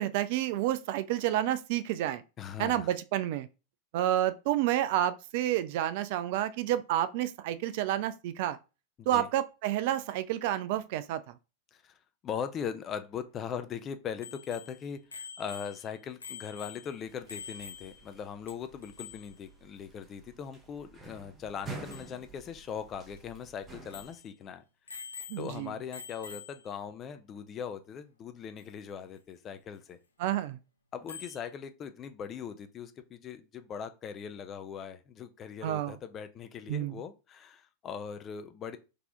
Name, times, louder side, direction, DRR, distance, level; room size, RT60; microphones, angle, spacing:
voice 1, 0.0-2.2 2.6-3.5 3.9-8.6 9.1-11.2 25.3-25.7 30.2-30.6 35.6-35.9 36.7-37.0, right 12 dB, 50° right, 0.3 m, -29 dB
voice 2, 2.4-2.9 9.0-9.3 11.7-11.9 12.2-24.6 25.4-30.0 30.9-38.8, left 7 dB, 30° left, 0.5 m, -40 dB
Bicycle bell, 14.2-18.2 18.5-18.6 18.8-19.3 21.6-21.7 21.9-22.1 22.7-22.8 23.2-23.3 23.9-24.3 24.9-25.6 25.9-26.7 28.6-28.7 31.1-31.5, left 7 dB, 75° left, 0.6 m, -46 dB
sound 1, 17.1-24.2, right 4 dB, 20° right, 1.1 m, -49 dB
3.9 x 2.8 x 3.7 m
figure-of-eight pair, 90°, 0 cm